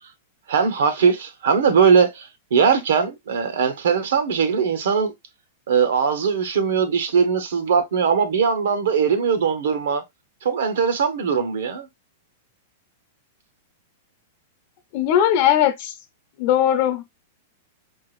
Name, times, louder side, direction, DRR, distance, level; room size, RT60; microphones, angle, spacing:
voice 1, 0.5-5.1 5.7-10.0 10.4-11.9, right 6 dB, 80° right, 0.9 m, -20 dB
voice 2, 14.9-15.9 16.4-17.0, left 10 dB, 45° left, 0.9 m, -19 dB
4.5 x 2.5 x 3.1 m
supercardioid pair, 150°, 0 cm